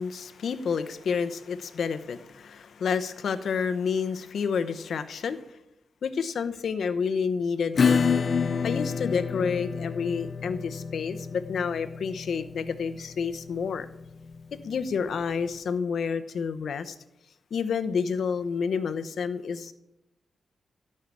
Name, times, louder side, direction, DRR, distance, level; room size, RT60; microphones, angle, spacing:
voice 1, 0.0-5.6 6.0-8.3 8.6-13.9 14.5-17.0 17.5-19.7, left 6 dB, 70° left, 11 dB, 0.8 m, -29 dB
Acoustic guitar / Strum, 7.8-15.0, left 5 dB, 50° left, 0.4 m, -29 dB
12.5 x 5.6 x 8.3 m, 0.86 s
wide cardioid pair, 110°, 0 cm